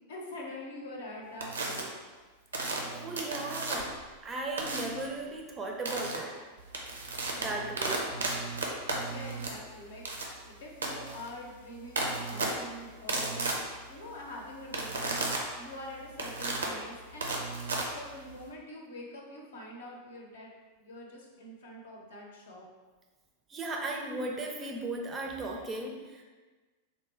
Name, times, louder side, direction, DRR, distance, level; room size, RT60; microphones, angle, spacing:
voice 1, 0.1-1.9 9.1-13.5 13.8-17.3 17.9-20.5 20.8-22.6, left 1 dB, 60° left, -1 dB, 0.6 m, -45 dB
sound 1, 1.4-1.8 2.5-4.0 4.6-5.0 5.8-6.2 6.6-18.5, right 2 dB, 70° right, 0.5 m, -34 dB
voice 2, 2.9-3.9 4.2-6.3 7.4-8.0 23.5-26.2, right 2 dB, 20° right, 1 dB, 0.4 m, -36 dB
3.7 x 2.1 x 3.2 m, 1.3 s
figure-of-eight pair, 90°, 0 cm